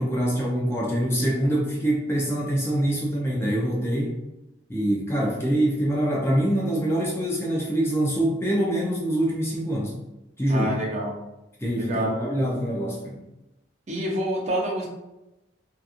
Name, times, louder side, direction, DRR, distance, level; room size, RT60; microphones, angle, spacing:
voice 1, 0.0-4.2 4.7-10.0 10.4-10.7 11.6-13.2, right 1 dB, 15° left, -4 dB, 0.4 m, -24 dB
voice 2, 10.5-11.2 11.7-12.2 13.9-14.9, equal, 35° right, -2 dB, 0.5 m, -27 dB
2.8 x 2.4 x 2.4 m, 0.95 s
head